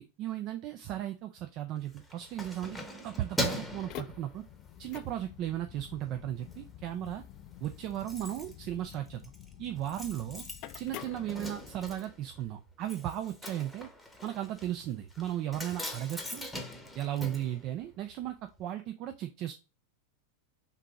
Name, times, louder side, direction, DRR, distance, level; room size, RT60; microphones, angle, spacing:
voice 1, 0.0-4.4 4.8-7.2 7.6-9.2 9.6-10.4 10.8-13.9 14.2-16.5 16.9-18.3 18.6-19.5, right 12 dB, 45° right, 7 dB, 0.4 m, -36 dB
Keys jangling, 1.8-4.9 5.3-5.5 5.9-6.6 6.9-7.0 7.2-7.3 7.5-18.3 18.6-18.7, left 1 dB, 5° left, 0.9 m, -41 dB
sound 1, 3.7-11.9, left 12 dB, 45° left, 0.3 m, -48 dB
3.7 x 2.8 x 4.6 m, 0.30 s
hypercardioid pair, 95°, 0 cm